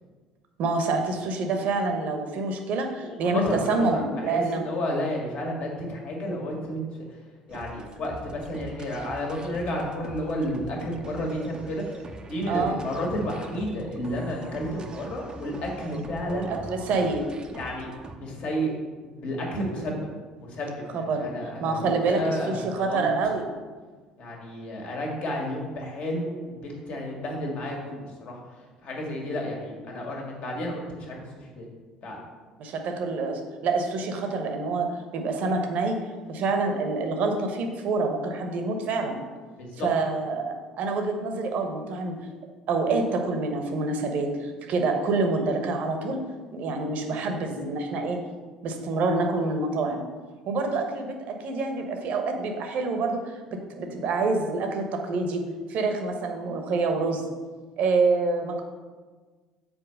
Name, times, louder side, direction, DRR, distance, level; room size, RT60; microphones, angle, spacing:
voice 1, 0.6-4.6 12.5-12.8 16.2-17.3 19.7-19.9 20.9-21.3 21.6-23.5 32.6-39.2 39.8-42.2 42.7-46.2 46.5-48.2 48.6-50.0 50.5-53.4 53.7-55.4 55.7-57.2 57.8-58.6, right 3 dB, 50° right, 4 dB, 1.1 m, -27 dB
voice 2, 2.9-6.8 7.5-16.5 17.5-17.9 18.1-18.7 19.0-20.1 20.4-23.1 24.2-28.4 28.8-31.7 32.0-32.2 39.6-39.9, left 1 dB, 50° left, -1 dB, 1.9 m, -31 dB
sound 1, 7.5-18.2, right 2 dB, 25° right, 0.8 m, -43 dB
6.4 x 4.5 x 6.6 m, 1.4 s
figure-of-eight pair, 60°, 3 cm